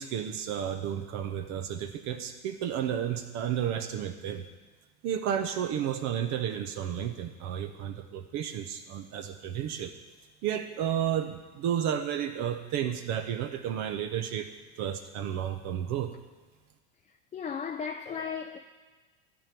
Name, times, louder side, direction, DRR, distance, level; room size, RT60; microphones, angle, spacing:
voice 1, 0.0-4.4 5.0-9.9 10.4-14.5 14.8-16.1, right 9 dB, 50° right, 0.9 m, -32 dB
voice 2, 17.1-18.6, left 6 dB, 20° left, 0.6 m, -36 dB
13.0 x 4.5 x 8.4 m
hypercardioid pair, 85°, 34 cm